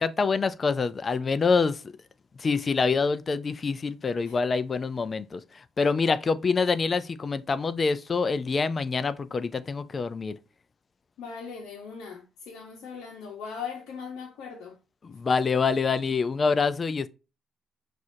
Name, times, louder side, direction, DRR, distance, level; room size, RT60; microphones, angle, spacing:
voice 1, 0.0-1.8 2.4-5.4 5.8-10.4 15.1-17.1, left 4 dB, 35° left, 0.4 m, -26 dB
voice 2, 11.2-14.8 15.1-15.2, left 6 dB, 90° left, 0.8 m, -39 dB
6.1 x 2.5 x 2.6 m
cardioid pair, 90°, 0 cm